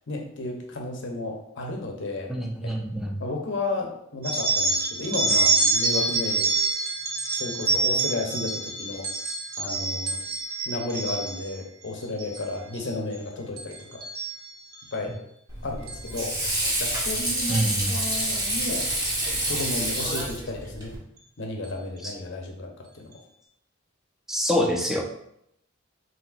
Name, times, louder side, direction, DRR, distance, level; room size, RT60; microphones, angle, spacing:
voice 1, 0.1-2.3 2.6-2.7 3.2-6.5 7.3-9.0 9.6-10.2 10.7-14.0 14.9-15.1 15.6-16.3 16.8-18.9 19.5-20.9 21.4-22.7 22.9-23.1, left 2 dB, 60° left, 1 dB, 0.8 m, -32 dB
voice 2, 2.3-3.2 17.5-17.9 22.0-22.1 24.3-25.0, equal, ahead, 0 dB, 0.5 m, -26 dB
sound 1, 4.2-11.5 12.0-12.4 12.7-13.2 13.6-14.9 15.9-16.1 17.0-17.2 18.2-18.3 18.7-18.8 19.3-19.5, right 3 dB, 50° right, 0.8 m, -26 dB
Water / Sink (filling or washing), 15.5-21.0, right 1 dB, 20° right, 1.2 m, -28 dB
5.7 x 3.0 x 2.5 m, 0.75 s
head